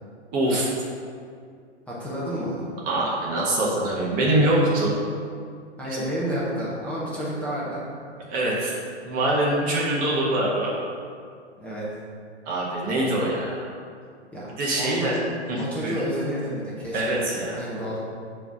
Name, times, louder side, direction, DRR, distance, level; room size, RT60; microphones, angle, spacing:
voice 1, 0.3-0.7 2.9-5.0 8.3-8.8 9.0-10.8 12.4-13.7 14.6-15.2 15.5-16.0 16.9-17.6, right 1 dB, 25° right, -5 dB, 1.3 m, -24 dB
voice 2, 1.9-2.7 4.4-4.5 5.8-7.8 11.6-11.9 14.3-14.5 14.8-15.1 15.6-18.0, equal, 5° left, -9 dB, 1.2 m, -30 dB
7.0 x 3.4 x 6.2 m, 2.2 s
figure-of-eight pair, 120°, 35 cm